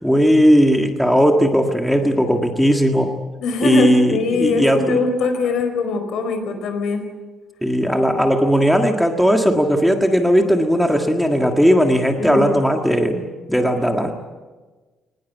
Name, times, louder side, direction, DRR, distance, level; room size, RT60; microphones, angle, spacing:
voice 1, 0.0-3.1 3.6-5.0 7.6-14.1, equal, ahead, 3 dB, 1.7 m, -17 dB
voice 2, 3.4-7.1 12.2-12.6, left 3 dB, 70° left, 8 dB, 4.8 m, -22 dB
24.0 x 19.5 x 8.3 m, 1.3 s
cardioid pair, 155°, 0 cm